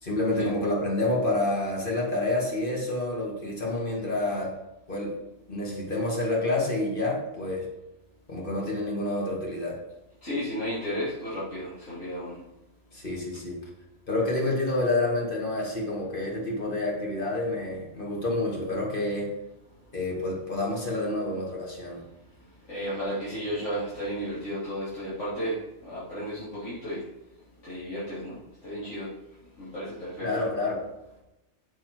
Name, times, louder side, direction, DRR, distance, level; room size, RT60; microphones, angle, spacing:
voice 1, 0.0-4.5 4.9-5.2 5.5-7.7 8.3-9.8 12.9-13.6 14.1-19.3 19.9-22.0 30.2-30.8, left 2 dB, 45° left, -2 dB, 2.4 m, -28 dB
voice 2, 10.2-12.4 22.7-27.0 27.6-29.1 29.6-30.4, equal, 90° left, -13 dB, 3.6 m, -33 dB
7.6 x 7.2 x 4.6 m, 0.96 s
omnidirectional pair, 1.2 m